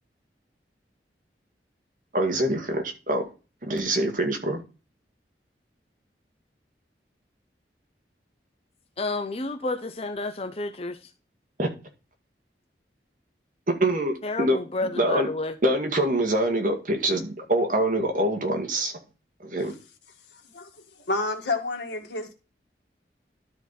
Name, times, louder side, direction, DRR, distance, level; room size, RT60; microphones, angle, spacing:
voice 1, 2.1-3.2 3.6-4.6 11.6-11.7 13.7-14.6 15.0-15.3 15.6-18.9 19.4-19.7, right 1 dB, 50° right, 2.1 m, -24 dB
voice 2, 9.0-11.1 14.2-15.6 17.1-17.2, left 2 dB, 35° left, 0.7 m, -30 dB
voice 3, 20.3-20.7 21.1-22.3, left 3 dB, 85° left, 2.0 m, -29 dB
12.5 x 4.4 x 4.2 m
head